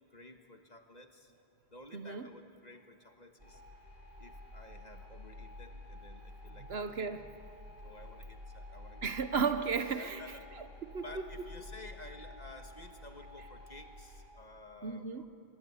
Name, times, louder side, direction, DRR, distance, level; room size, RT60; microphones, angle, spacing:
voice 1, 0.1-1.3 1.7-3.6 4.2-7.0 7.8-9.1 9.8-10.5 11.0-15.3, left 2 dB, 40° left, 5 dB, 1.6 m, -53 dB
voice 2, 1.9-2.3 6.6-7.3 9.0-11.5 13.4-13.5 14.8-15.2, right 5 dB, 70° right, 10 dB, 1.2 m, -35 dB
sound 1, 3.4-14.2, left 1 dB, 55° right, 6.6 m, -50 dB
25.5 x 20.5 x 9.8 m, 2.5 s
omnidirectional pair, 1.1 m